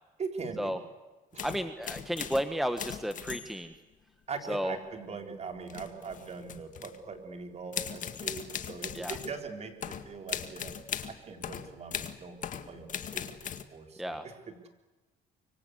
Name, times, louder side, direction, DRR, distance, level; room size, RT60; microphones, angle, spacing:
voice 1, 0.2-0.8 1.3-1.5 4.3-10.7 11.1-12.4 12.7-14.6, right 5 dB, 40° right, 5 dB, 4.1 m, -41 dB
sound 1, 1.3-2.5 2.8-3.7 5.7-7.0 7.7-9.4 9.8-13.6, left 8 dB, 50° left, 2.0 m, -39 dB
voice 2, 1.4-3.7 4.5-4.8 8.9-9.2 14.0-14.2, equal, ahead, 9 dB, 1.4 m, -32 dB
25.0 x 24.0 x 8.2 m, 1.2 s
cardioid pair, 110°, 17 cm